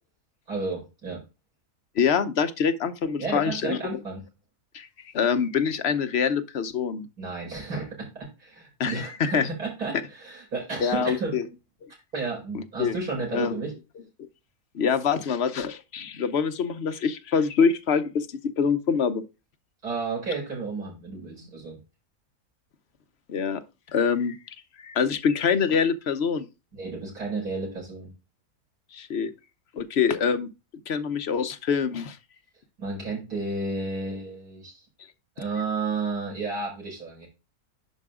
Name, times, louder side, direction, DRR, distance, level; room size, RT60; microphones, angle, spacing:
voice 1, 0.5-1.2 3.2-4.2 7.2-8.1 8.4-11.4 12.1-13.7 19.8-21.8 26.7-28.1 32.8-34.8 35.4-37.3, right 3 dB, 80° right, 5.5 m, -32 dB
voice 2, 2.0-3.8 4.7-4.9 5.1-7.1 8.8-9.4 10.8-11.5 11.8-11.9 12.5-12.9 13.3-13.6 14.7-18.3 18.6-19.2 23.3-23.6 23.9-24.4 24.8-26.5 28.9-29.3 29.7-30.5 30.9-32.2, left 6 dB, 50° left, 1.0 m, -25 dB
11.0 x 4.6 x 3.7 m
omnidirectional pair, 1.6 m